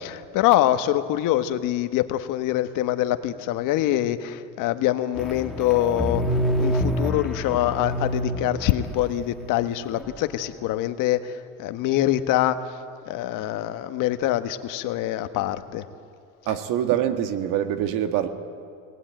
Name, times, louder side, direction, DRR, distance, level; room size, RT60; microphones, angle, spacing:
voice 1, 0.0-12.6 13.1-15.8, left 13 dB, 60° left, 9 dB, 1.4 m, -24 dB
sound 1, 5.1-10.1, equal, ahead, 2.2 m, -27 dB
voice 2, 16.5-18.3, right 10 dB, 60° right, 8 dB, 2.0 m, -24 dB
24.5 x 19.0 x 9.1 m, 2.3 s
supercardioid pair, 115°, 36 cm